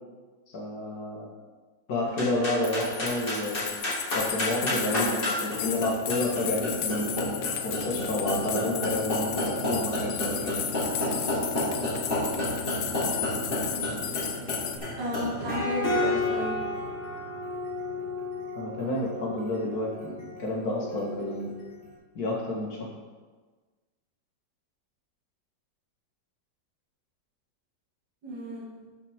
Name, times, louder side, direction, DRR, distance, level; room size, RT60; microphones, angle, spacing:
voice 1, 0.5-1.3 1.9-3.6 4.1-7.1 7.6-10.7 18.5-21.5 22.2-22.9, left 1 dB, 55° left, -2 dB, 2.2 m, -30 dB
sound 1, 2.1-21.6, left 1 dB, 30° left, 2.3 m, -31 dB
sound 2, 2.6-14.8, left 9 dB, 70° left, 1.3 m, -34 dB
voice 2, 15.0-16.6 28.2-28.7, left 1 dB, 70° right, -7 dB, 3.0 m, -33 dB
12.0 x 5.6 x 3.7 m, 1.4 s
omnidirectional pair, 2.0 m